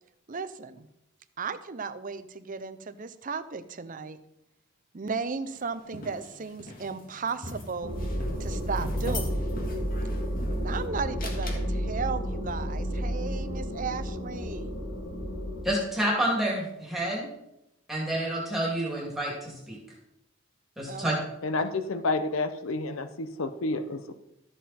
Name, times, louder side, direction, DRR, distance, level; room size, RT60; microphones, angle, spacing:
voice 1, 0.3-0.9 1.4-4.2 4.9-8.0 8.4-9.5 10.6-14.7 20.9-21.1, right 5 dB, 40° right, 12 dB, 0.6 m, -35 dB
sound 1, 5.5-10.8 11.2-11.6, left 1 dB, 45° left, 1.9 m, -40 dB
sound 2, 7.8-15.6, equal, 65° left, 2.4 m, -31 dB
voice 2, 15.6-17.3 17.9-19.8 20.8-21.1, right 1 dB, ahead, -4 dB, 2.6 m, -29 dB
voice 3, 21.4-24.1, left 3 dB, 90° left, 10 dB, 0.7 m, -30 dB
13.0 x 7.4 x 4.3 m, 0.86 s
head